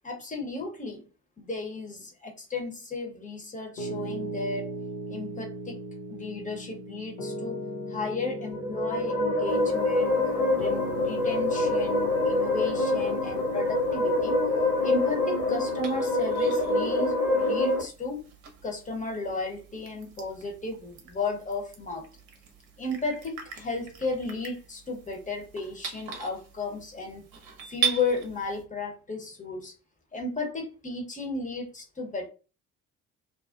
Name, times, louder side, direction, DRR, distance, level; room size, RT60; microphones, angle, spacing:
voice 1, 0.0-1.0 1.4-4.7 5.1-5.8 6.1-7.6 7.9-10.2 10.5-14.4 14.8-18.2 18.6-22.0 22.8-27.2 27.7-29.7 30.1-32.3, left 3 dB, 15° left, 2 dB, 0.8 m, -34 dB
Piano, 3.8-17.1, equal, 75° left, 0.5 m, -39 dB
sound 1, 8.4-17.8, left 2 dB, 55° left, 1.0 m, -26 dB
sound 2, 9.5-28.6, right 8 dB, 60° right, 0.7 m, -41 dB
2.6 x 2.2 x 2.3 m, 0.34 s
figure-of-eight pair, 45°, 46 cm